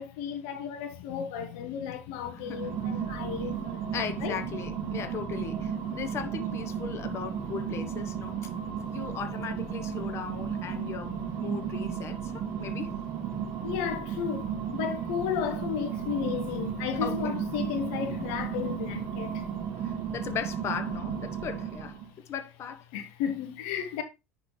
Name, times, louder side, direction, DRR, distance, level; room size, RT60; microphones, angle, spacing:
voice 1, 0.0-3.9 4.2-4.3 13.6-19.5 22.9-24.0, left 8 dB, 65° left, 1.1 m, -33 dB
sound 1, 2.4-22.1, right 7 dB, 50° right, 1.4 m, -34 dB
voice 2, 2.5-3.0 3.9-8.5 8.9-12.9 17.0-17.4 19.8-22.0 22.3-22.8, left 7 dB, 40° left, 1.2 m, -37 dB
10.0 x 4.0 x 3.2 m
hypercardioid pair, 80°, 7 cm